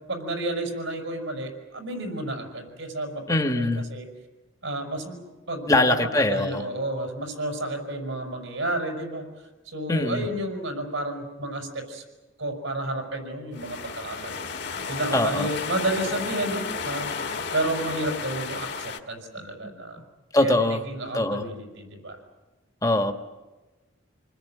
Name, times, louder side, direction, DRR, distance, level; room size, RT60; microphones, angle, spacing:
voice 1, 0.1-3.2 3.6-4.1 4.6-5.2 5.5-9.3 9.7-12.0 12.4-14.4 14.9-17.1 17.5-20.0 20.4-22.2, right 1 dB, 75° right, 3 dB, 6.1 m, -31 dB
voice 2, 3.3-3.9 5.7-6.6 9.9-10.3 15.1-15.5 20.3-20.8 21.1-21.5 22.8-23.1, left 2 dB, 15° left, 4 dB, 1.3 m, -22 dB
sound 1, 13.5-19.0, left 5 dB, 55° left, 1.7 m, -33 dB
27.5 x 20.5 x 9.2 m, 1.2 s
head